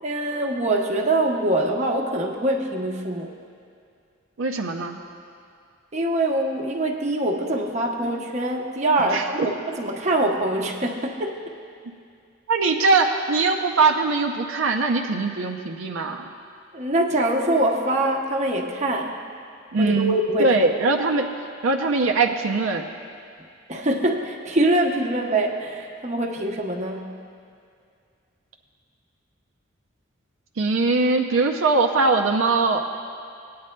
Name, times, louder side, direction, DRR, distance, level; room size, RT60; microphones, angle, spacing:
voice 1, 0.0-3.4 5.9-11.5 16.7-19.2 19.8-20.5 23.7-27.2, right 1 dB, 35° right, 1 dB, 0.8 m, -24 dB
voice 2, 4.4-5.0 9.1-9.5 12.5-16.3 19.7-20.1 20.4-21.3 21.6-22.8 30.6-32.9, right 3 dB, 75° right, 3 dB, 0.6 m, -21 dB
19.0 x 9.4 x 2.2 m, 2.3 s
head